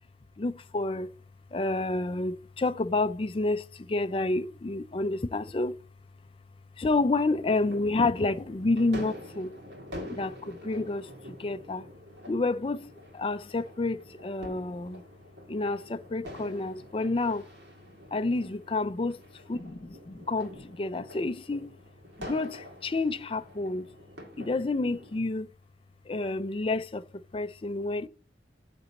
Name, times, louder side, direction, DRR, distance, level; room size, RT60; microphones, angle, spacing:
voice 1, 0.4-1.1 1.5-5.8 6.8-9.6 10.1-11.9 12.3-15.0 15.5-17.5 18.1-19.2 19.5-21.8 22.2-23.9 24.4-25.5 26.1-28.1, left 2 dB, 30° left, 0.4 m, -29 dB
sound 1, 7.2-25.2, left 1 dB, 85° right, 2.3 m, -46 dB
9.4 x 4.1 x 6.9 m
head